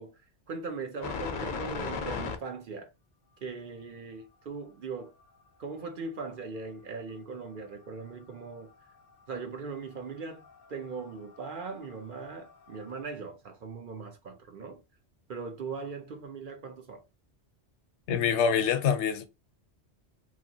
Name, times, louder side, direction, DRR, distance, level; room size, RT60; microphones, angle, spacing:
voice 1, 0.0-2.9 3.4-5.1 5.6-8.9 9.3-14.8 15.3-17.0, right 4 dB, 55° right, 0.7 m, -40 dB
sound 1, 1.0-2.4 5.2-5.3 7.1-7.2 7.6-9.4 9.9-13.0, left 5 dB, 55° left, 0.6 m, -38 dB
voice 2, 18.1-19.3, left 7 dB, 85° left, 0.9 m, -25 dB
2.9 x 2.4 x 2.6 m
omnidirectional pair, 1.1 m